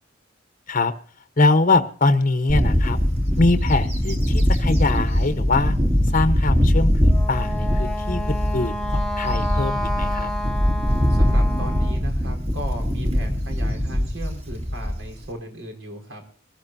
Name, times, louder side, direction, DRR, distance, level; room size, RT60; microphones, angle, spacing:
voice 1, 1.4-3.0 3.4-5.7 6.0-10.3, left 3 dB, 40° left, 9 dB, 1.0 m, -22 dB
Bird / Wind, 2.5-15.3, equal, 30° right, 2.5 m, -21 dB
Wind instrument woodwind instrument, 7.1-12.0, left 1 dB, 5° left, 1.0 m, -31 dB
voice 2, 11.1-16.3, right 1 dB, 70° right, 3 dB, 5.0 m, -36 dB
23.0 x 14.5 x 2.7 m, 0.43 s
head